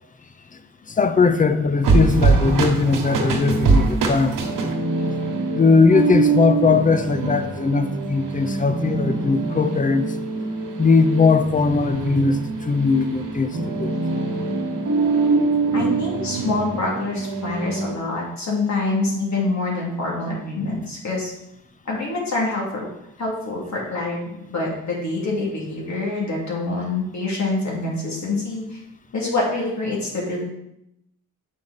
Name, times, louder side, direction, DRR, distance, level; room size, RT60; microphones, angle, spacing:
voice 1, 0.9-4.4 5.5-10.0 10.8-13.5 13.8-14.2, left 4 dB, 25° left, 10 dB, 0.6 m, -19 dB
sound 1, 1.8-18.0, right 3 dB, 85° right, 1.3 m, -23 dB
voice 2, 15.7-21.3 21.8-22.9 23.2-28.8 29.1-30.4, left 2 dB, 60° left, -3 dB, 2.6 m, -26 dB
7.2 x 5.0 x 4.0 m, 0.81 s
cardioid pair, 90°, 32 cm